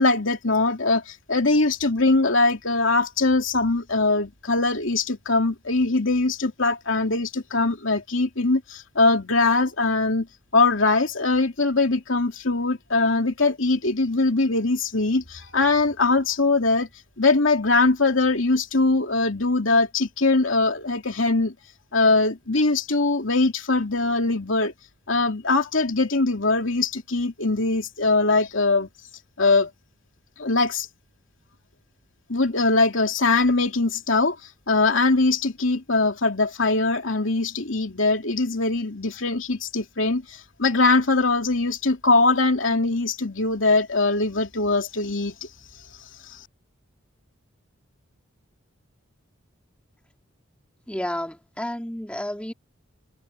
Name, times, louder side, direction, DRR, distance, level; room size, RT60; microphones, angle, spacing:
voice 1, 0.0-10.3 10.5-16.9 17.2-21.5 21.9-24.7 25.1-28.9 29.4-29.7 30.4-30.9 32.3-34.4 34.7-45.3 46.3-46.4, left 3 dB, 70° left, 2.9 m, -22 dB
voice 2, 50.9-52.5, left 1 dB, 5° left, 3.7 m, -31 dB
head